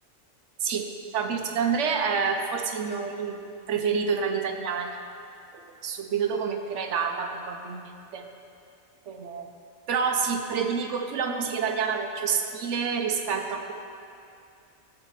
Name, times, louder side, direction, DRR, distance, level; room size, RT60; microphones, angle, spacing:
voice 1, 1.1-5.0 5.8-8.3 9.1-9.5 9.9-13.7, right 6 dB, 65° right, 5 dB, 1.0 m, -28 dB
12.0 x 7.3 x 3.2 m, 2.5 s
omnidirectional pair, 1.4 m